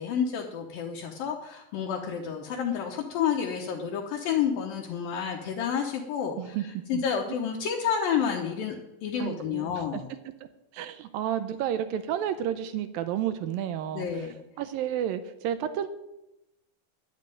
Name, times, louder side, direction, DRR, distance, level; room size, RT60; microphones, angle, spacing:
voice 1, 0.0-6.6 6.9-8.8 9.0-10.0 13.9-14.4, left 7 dB, 70° left, 0 dB, 2.8 m, -30 dB
voice 2, 6.9-7.4 9.2-10.0 10.7-14.3 14.6-15.9, right 10 dB, 80° right, 11 dB, 2.4 m, -31 dB
11.5 x 7.7 x 9.1 m, 0.90 s
omnidirectional pair, 4.4 m